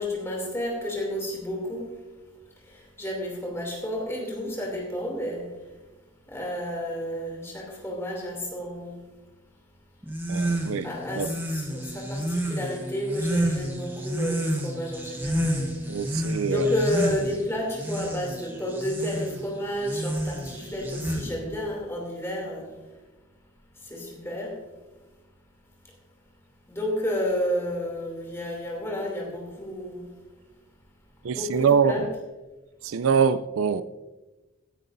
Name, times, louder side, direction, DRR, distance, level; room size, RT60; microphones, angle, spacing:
voice 1, 0.0-2.0 2.7-5.5 6.3-9.0 10.8-15.7 16.5-22.7 23.8-24.6 26.7-30.1 31.3-32.1, left 1 dB, 15° left, 2.7 m, -31 dB
sound 1, 10.0-21.6, right 1 dB, 10° right, 1.0 m, -30 dB
voice 2, 10.3-10.9 11.2-11.3 15.9-16.8 31.2-32.1 32.8-33.8, right 6 dB, 80° right, 0.4 m, -24 dB
16.5 x 11.0 x 2.6 m
head